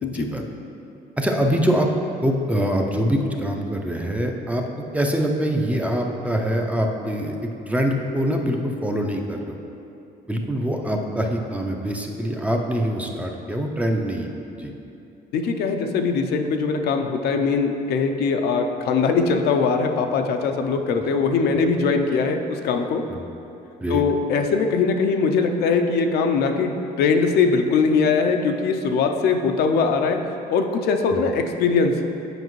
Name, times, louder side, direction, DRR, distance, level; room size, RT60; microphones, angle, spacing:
voice 1, 0.1-0.4 1.2-1.9 2.2-4.6 4.9-7.4 7.7-9.6 10.3-14.7 23.1-23.2 23.8-24.0, equal, 10° right, 2 dB, 0.5 m, -24 dB
voice 2, 15.3-23.0 23.9-30.2 30.5-31.9, left 5 dB, 70° left, 5 dB, 0.5 m, -21 dB
7.8 x 5.0 x 3.1 m, 2.8 s
cardioid pair, 110°, 17 cm